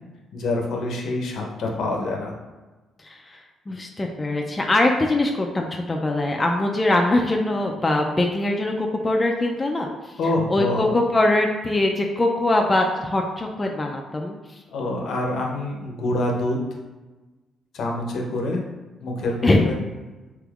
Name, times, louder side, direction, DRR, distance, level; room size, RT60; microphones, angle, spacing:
voice 1, 0.3-2.3 10.2-11.0 14.7-16.6 17.7-18.6 19.0-19.8, left 2 dB, 70° left, 0 dB, 0.6 m, -26 dB
voice 2, 3.0-3.4 3.7-10.1 10.5-14.4 19.4-19.7, left 2 dB, 20° left, 1 dB, 0.3 m, -22 dB
3.4 x 2.9 x 2.3 m, 1.2 s
cardioid pair, 90°, 0 cm